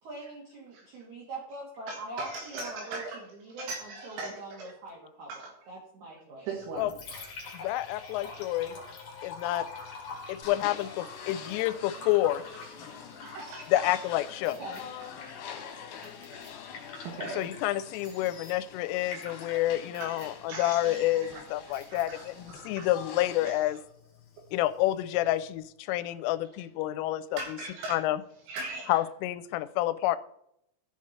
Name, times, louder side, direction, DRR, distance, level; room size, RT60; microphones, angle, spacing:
voice 1, 0.0-3.0 3.3-6.5 14.6-14.8, right 2 dB, 55° right, -3 dB, 2.2 m, -43 dB
voice 2, 1.9-3.2 3.5-4.7 5.3-5.7 6.4-6.9 13.2-14.0 15.2-15.4 16.3-16.4 17.0-17.4 19.9-22.9 23.5-23.7 27.4-28.0 28.5-29.0, right 3 dB, 75° right, 0 dB, 3.8 m, -40 dB
Liquid, 6.6-25.6, left 4 dB, 45° left, 2.7 m, -47 dB
voice 3, 7.6-8.8 9.2-9.7 10.3-12.4 13.7-14.6 17.4-23.8 24.5-27.6 27.9-28.2 28.9-30.2, left 15 dB, 85° left, 14 dB, 3.1 m, -29 dB
sound 1, 10.4-23.5, left 7 dB, 70° left, 3.2 m, -45 dB
sound 2, 14.4-14.8 16.0-16.5 18.0-18.5 19.9-20.3 21.7-22.1, right 2 dB, 40° right, 2.6 m, -56 dB
14.5 x 4.9 x 4.2 m, 0.73 s
omnidirectional pair, 5.7 m